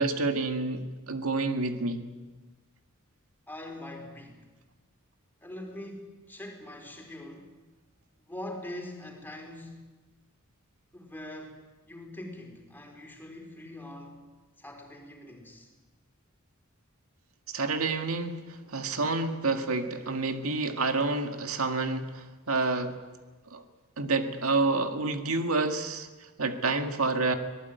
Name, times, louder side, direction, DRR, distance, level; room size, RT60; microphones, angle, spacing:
voice 1, 0.0-2.1 17.5-23.0 23.5-23.6 24.0-27.4, right 3 dB, 85° right, 6 dB, 2.0 m, -29 dB
voice 2, 3.5-4.4 5.4-7.5 8.3-9.9 10.9-11.6 11.8-14.2 14.6-15.7, left 1 dB, 10° left, 2 dB, 4.3 m, -43 dB
25.0 x 19.0 x 9.4 m, 1.2 s
head